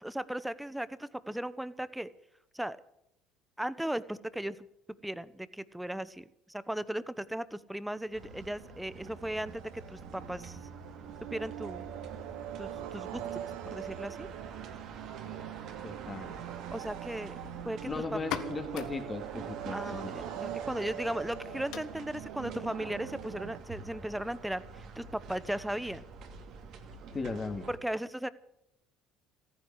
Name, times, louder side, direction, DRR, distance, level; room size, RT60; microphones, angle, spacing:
voice 1, 0.0-2.1 2.5-2.8 3.6-4.6 5.0-10.6 11.3-11.9 12.6-13.4 13.7-14.3 16.7-17.4 17.6-17.8 18.1-18.2 19.7-26.0 27.7-28.3, right 1 dB, 5° right, 16 dB, 1.0 m, -37 dB
sound 1, 8.0-23.6, right 12 dB, 75° right, 1.0 m, -43 dB
sound 2, 8.1-27.8, right 4 dB, 60° right, 2.6 m, -47 dB
voice 2, 15.8-16.3 17.8-19.8 27.1-27.7, left 3 dB, 25° left, 6 dB, 2.9 m, -37 dB
sound 3, 18.1-25.6, left 10 dB, 70° left, 1.4 m, -46 dB
15.0 x 9.7 x 9.9 m, 0.78 s
hypercardioid pair, 65°, 0 cm